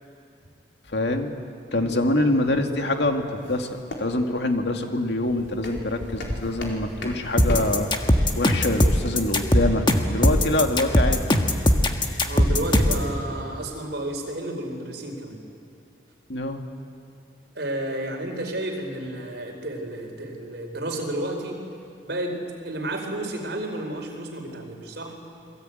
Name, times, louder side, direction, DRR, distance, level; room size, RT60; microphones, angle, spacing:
voice 1, 0.9-1.4 1.7-7.9 8.4-11.2 16.3-16.7, left 1 dB, 65° left, 4 dB, 2.3 m, -25 dB
sound 1, 2.4-11.6, left 1 dB, 90° left, 4.4 m, -39 dB
sound 2, 7.4-13.1, left 1 dB, 25° left, 1.6 m, -19 dB
voice 2, 12.2-15.4 17.5-21.6 22.0-25.2, right 1 dB, 65° right, 2 dB, 4.7 m, -31 dB
27.5 x 21.5 x 9.3 m, 2.4 s
head